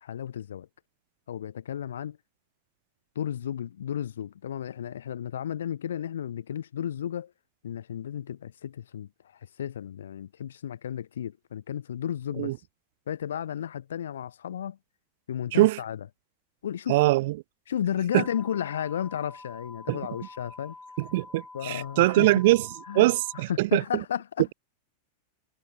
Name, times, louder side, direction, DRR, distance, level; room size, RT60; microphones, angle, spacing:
voice 1, 0.0-0.7 1.3-2.2 3.1-7.3 7.6-9.1 9.6-12.6 13.1-14.8 15.3-16.1 16.6-17.0 17.7-20.7 21.5-22.4 22.9-24.5, left 9 dB, 65° left, 1.0 m, -33 dB
voice 2, 16.9-17.3 18.1-18.2 19.9-20.0 21.1-22.6 22.9-23.8, right 19 dB, 50° right, 0.4 m, -22 dB
sound 1, 18.1-23.4, left 3 dB, 10° left, 1.9 m, -47 dB
figure-of-eight pair, 90°, 0 cm